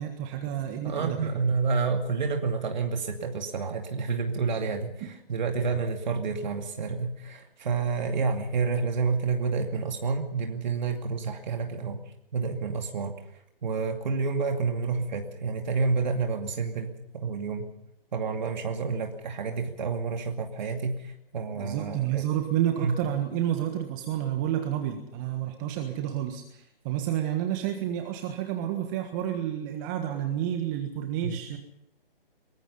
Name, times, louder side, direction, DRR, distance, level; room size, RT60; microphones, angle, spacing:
voice 1, 0.0-1.3 21.5-31.6, right 11 dB, 20° right, 5 dB, 1.5 m, -30 dB
voice 2, 0.8-12.0 12.3-13.1 13.6-17.7 18.1-22.2 22.8-23.0 31.2-31.4, right 4 dB, 50° right, 4 dB, 2.5 m, -29 dB
23.5 x 21.0 x 5.6 m, 0.78 s
figure-of-eight pair, 140°, 30 cm